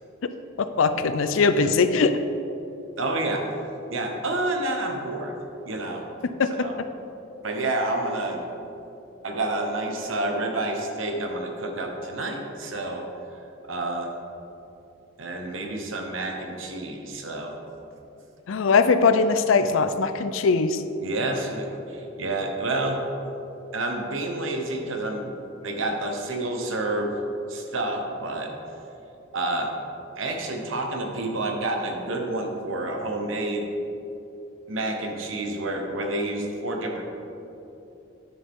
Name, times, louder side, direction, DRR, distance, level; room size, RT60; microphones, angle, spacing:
voice 1, 0.8-2.2 6.4-6.9 18.5-20.8, left 4 dB, 85° left, 10 dB, 0.5 m, -21 dB
voice 2, 3.0-3.4 3.9-5.3 5.7-6.0 6.6-6.7 7.4-8.4 9.2-13.1 13.7-14.1 15.2-17.6 21.0-23.0 23.7-25.3 25.6-27.2 27.5-28.5 29.3-29.7 30.2-33.7 34.7-37.0, right 2 dB, 85° right, 3 dB, 1.1 m, -29 dB
10.5 x 6.4 x 3.7 m, 2.9 s
head